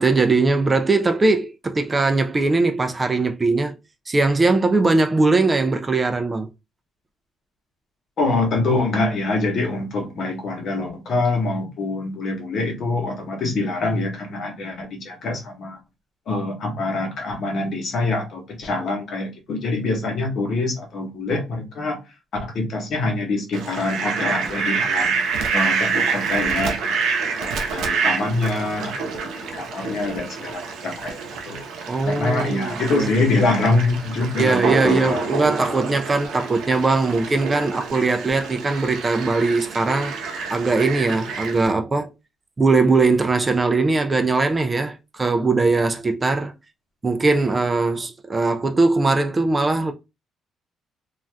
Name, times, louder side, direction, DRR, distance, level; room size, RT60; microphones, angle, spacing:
voice 1, 0.0-3.8 4.1-6.5 31.9-33.1 34.3-40.1 40.5-42.1 42.6-46.5 47.0-49.9, right 3 dB, 20° right, 0.3 m, -20 dB
voice 2, 8.2-15.8 16.3-22.0 22.4-25.2 25.5-27.1 27.4-31.2 31.5-31.6 32.0-35.3, left 2 dB, 55° left, 1.0 m, -25 dB
Fowl, 23.5-41.7, right 5 dB, 85° right, 0.6 m, -27 dB
2.5 x 2.3 x 3.2 m
cardioid pair, 135°, 0 cm